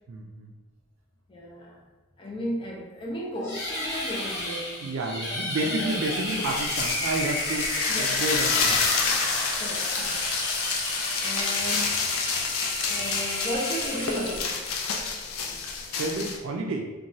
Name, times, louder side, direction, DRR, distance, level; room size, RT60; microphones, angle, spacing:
voice 1, 0.1-0.5 4.8-8.9 16.0-16.9, right 2 dB, 65° right, 2 dB, 0.3 m, -30 dB
voice 2, 1.3-1.8 2.2-4.8 5.6-6.2 7.9-8.2 9.6-10.2 11.2-12.0 12.8-14.5, equal, 25° left, -2 dB, 0.4 m, -34 dB
sound 1, 3.4-14.7, left 1 dB, 50° left, 0.7 m, -33 dB
sound 2, 6.0-14.4, right 1 dB, 15° right, 0.6 m, -38 dB
sound 3, 6.3-16.4, left 5 dB, 85° left, 0.4 m, -28 dB
2.9 x 2.2 x 2.6 m, 1.2 s
head